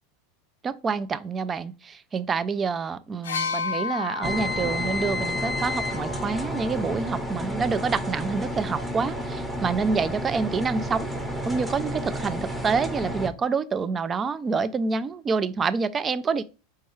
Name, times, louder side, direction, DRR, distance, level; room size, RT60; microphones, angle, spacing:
voice 1, 0.6-11.1 11.4-16.4, right 5 dB, 25° right, 0.3 m, -27 dB
sound 1, 3.2-7.0 8.1-8.2, left 5 dB, 80° left, 0.4 m, -33 dB
sound 2, 4.2-13.3, equal, 10° right, 0.8 m, -31 dB
4.5 x 2.3 x 4.4 m
hypercardioid pair, 100°, 0 cm